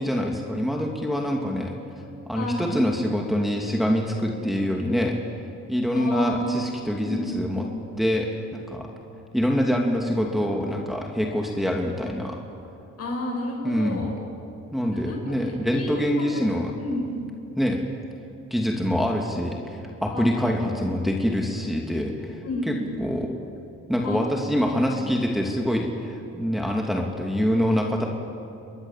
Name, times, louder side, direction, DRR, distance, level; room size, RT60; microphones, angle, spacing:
voice 1, 0.0-1.7 2.3-5.2 5.7-7.7 8.0-8.9 9.3-12.4 13.6-14.1 14.7-16.7 17.6-17.8 18.5-23.3 23.9-28.1, equal, ahead, 0 dB, 2.6 m, -25 dB
voice 2, 2.3-2.8 5.9-6.5 7.0-7.5 13.0-14.1 14.9-16.5 16.8-17.2 20.1-20.6 22.4-22.9 24.0-24.2 24.9-25.2, left 1 dB, 55° left, 1 dB, 7.8 m, -31 dB
29.0 x 21.5 x 7.5 m, 2.8 s
cardioid pair, 90°, 30 cm